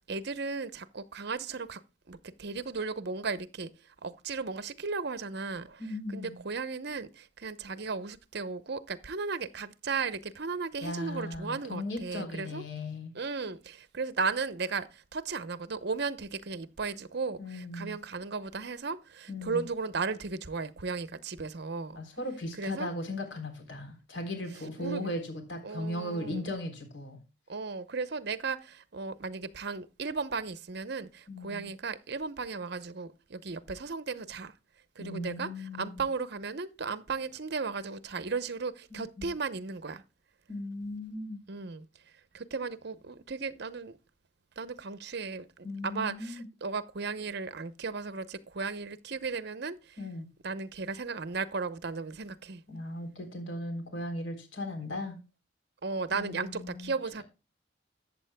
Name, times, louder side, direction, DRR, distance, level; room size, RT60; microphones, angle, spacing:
voice 1, 0.1-1.8 2.1-3.7 4.0-5.8 6.1-12.6 13.1-22.0 22.6-22.9 24.8-25.1 25.6-26.5 27.5-34.5 35.0-40.0 41.5-41.9 42.3-44.0 44.6-50.0 50.4-52.6 55.8-57.2, right 4 dB, 65° right, 0.8 m, -35 dB
voice 2, 5.8-6.4 10.8-13.1 17.4-18.0 19.3-19.7 22.0-27.2 31.3-31.7 35.0-36.0 38.9-39.3 40.5-41.4 45.6-46.5 50.0-50.3 52.7-55.2 56.1-56.9, left 1 dB, 85° left, 3.7 m, -37 dB
14.0 x 8.6 x 2.2 m
head